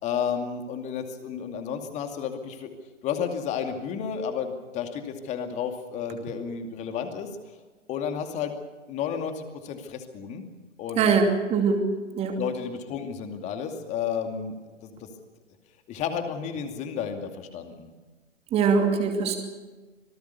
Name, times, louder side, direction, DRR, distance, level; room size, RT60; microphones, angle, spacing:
voice 1, 0.0-2.7 3.0-7.3 7.9-8.5 8.9-10.4 10.8-11.1 12.4-14.6 14.8-15.0 15.9-17.9, left 7 dB, 20° left, 6 dB, 2.5 m, -32 dB
voice 2, 11.0-11.9 12.2-12.4 18.5-19.4, right 5 dB, 15° right, 4 dB, 2.6 m, -22 dB
26.0 x 19.0 x 6.9 m, 1.3 s
figure-of-eight pair, 125°, 37 cm